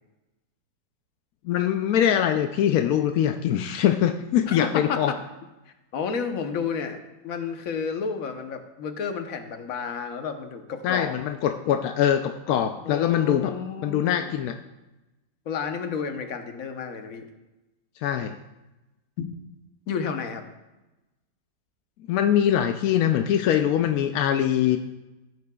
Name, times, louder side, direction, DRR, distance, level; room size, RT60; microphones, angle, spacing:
voice 1, 1.4-5.1 10.8-13.5 13.8-14.5 18.0-18.4 22.1-24.8, left 10 dB, 70° left, 6 dB, 0.8 m, -23 dB
voice 2, 4.5-5.2 5.7-7.0 7.2-11.1 12.8-14.3 15.5-17.2 19.2-19.3 19.9-20.4, left 6 dB, 55° left, 6 dB, 1.2 m, -31 dB
16.5 x 9.5 x 2.3 m, 1.0 s
omnidirectional pair, 1.9 m